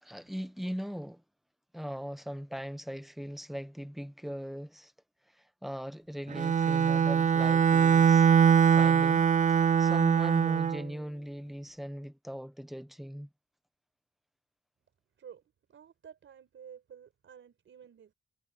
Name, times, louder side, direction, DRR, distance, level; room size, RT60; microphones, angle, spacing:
voice 1, 0.0-1.2 1.7-4.9 5.3-8.3 8.7-13.3, equal, ahead, 1.2 m, -39 dB
Bowed string instrument, 6.3-10.8, right 7 dB, 40° right, 0.4 m, -22 dB
voice 2, 15.7-18.1, right 8 dB, 80° right, 6.0 m, -52 dB
wide cardioid pair, 130°, 20 cm